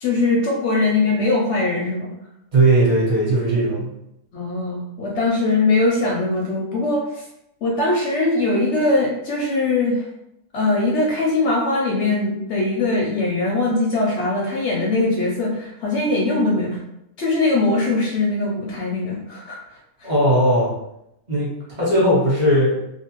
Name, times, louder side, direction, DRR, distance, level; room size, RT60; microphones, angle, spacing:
voice 1, 0.0-2.1 4.3-7.3 7.6-10.0 10.5-16.8 17.2-20.1, left 2 dB, 65° left, -3 dB, 0.7 m, -21 dB
voice 2, 2.5-3.9 20.0-20.7 21.3-22.8, right 1 dB, 35° right, -6 dB, 0.8 m, -18 dB
2.6 x 2.0 x 2.9 m, 0.82 s
omnidirectional pair, 1.6 m